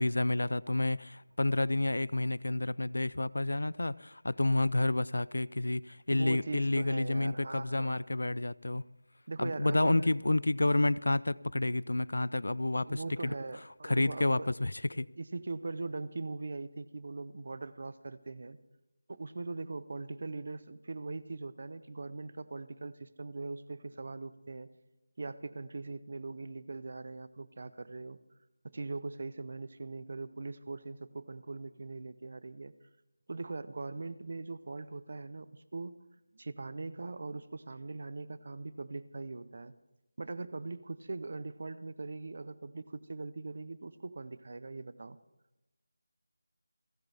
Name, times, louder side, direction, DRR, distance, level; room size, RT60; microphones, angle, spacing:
voice 1, 0.0-8.8 9.4-13.3 13.8-15.1, left 2 dB, 85° left, 0.5 m, -30 dB
voice 2, 5.9-8.0 9.3-10.1 12.8-14.5 15.2-18.6 19.1-24.7 25.2-28.2 28.6-32.7 33.3-36.0 36.3-39.7 40.2-45.2, right 3 dB, 35° right, 0.7 m, -41 dB
29.5 x 10.5 x 3.5 m
figure-of-eight pair, 180°, 0 cm